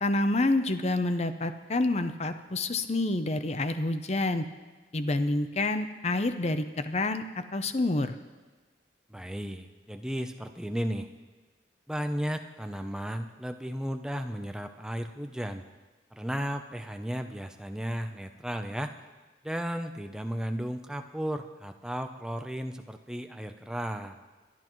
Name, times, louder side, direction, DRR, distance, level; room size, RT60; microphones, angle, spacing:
voice 1, 0.0-4.5 4.9-8.1, left 2 dB, 35° left, 9 dB, 0.6 m, -28 dB
voice 2, 9.1-11.1 11.9-15.7 16.1-18.9 19.4-24.2, equal, 5° right, 6 dB, 0.6 m, -34 dB
22.5 x 11.0 x 3.1 m, 1.3 s
head